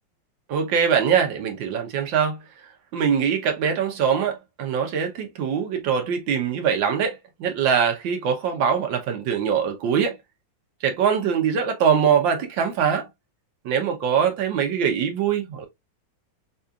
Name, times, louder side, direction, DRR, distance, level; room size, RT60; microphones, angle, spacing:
voice 1, 0.5-2.4 2.9-10.2 10.8-13.1 13.6-15.7, right 7 dB, 85° right, 1.6 m, -23 dB
4.7 x 2.7 x 2.3 m
omnidirectional pair, 2.0 m